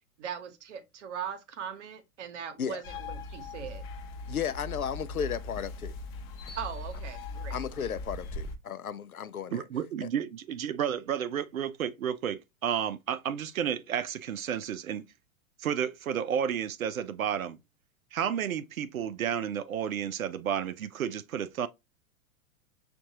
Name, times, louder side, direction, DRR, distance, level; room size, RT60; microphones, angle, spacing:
voice 1, 0.2-3.8 6.6-7.6, right 8 dB, 55° right, 1.0 m, -40 dB
sound 1, 2.8-8.6, left 3 dB, 30° left, 0.7 m, -39 dB
voice 2, 4.3-6.0 7.5-9.6 10.0-10.1, left 8 dB, 85° left, 0.6 m, -34 dB
voice 3, 9.5-15.0 15.6-17.6 18.1-21.7, right 9 dB, 75° right, 0.6 m, -31 dB
6.2 x 2.6 x 2.7 m
figure-of-eight pair, 100°, 42 cm